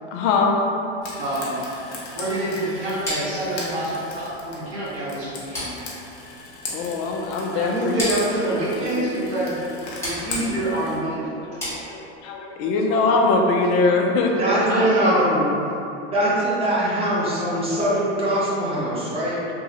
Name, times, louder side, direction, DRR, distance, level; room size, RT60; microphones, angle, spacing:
voice 1, 0.1-0.5 6.7-7.9 11.4-14.3, left 3 dB, 45° left, 1 dB, 0.5 m, -22 dB
Frying (food), 1.0-11.0, left 3 dB, 65° left, 0.9 m, -37 dB
voice 2, 1.2-1.6 2.1-5.7 7.5-9.6 10.0-11.3 14.3-15.4, right 1 dB, 55° right, -8 dB, 1.4 m, -26 dB
sound 1, 3.0-12.4, equal, 10° left, 1.5 m, -36 dB
voice 3, 14.4-15.5 16.1-19.4, right 1 dB, 15° right, -8 dB, 0.8 m, -22 dB
3.1 x 2.6 x 2.8 m, 2.9 s
supercardioid pair, 130°, 34 cm